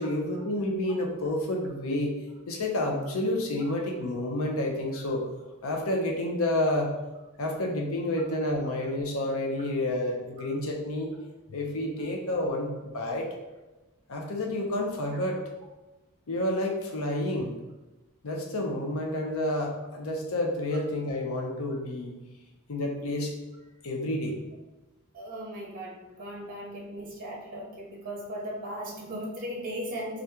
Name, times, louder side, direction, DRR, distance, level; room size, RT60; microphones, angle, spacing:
voice 1, 0.0-2.1 2.5-5.3 5.6-6.9 7.4-11.1 11.5-13.3 14.1-15.4 16.3-17.5 18.2-22.1 22.7-23.3 23.8-24.4, left 1 dB, 65° left, 1 dB, 0.6 m, -29 dB
voice 2, 25.1-30.2, equal, 40° right, -1 dB, 0.7 m, -37 dB
2.8 x 2.5 x 3.4 m, 1.1 s
head